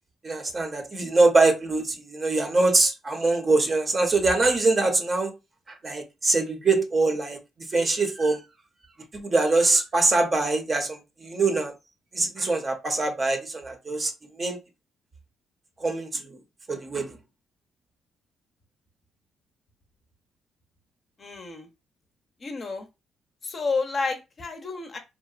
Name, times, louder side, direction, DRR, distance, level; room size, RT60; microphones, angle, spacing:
voice 1, 0.2-5.3 5.7-7.4 7.7-8.4 9.1-11.7 12.1-14.6 15.8-16.4 16.7-17.2, right 3 dB, 35° right, 0.6 m, -23 dB
voice 2, 21.2-21.7 22.4-22.8 23.4-25.0, left 4 dB, 40° left, 0.6 m, -30 dB
2.8 x 2.0 x 2.4 m
cardioid pair, 90°, 0 cm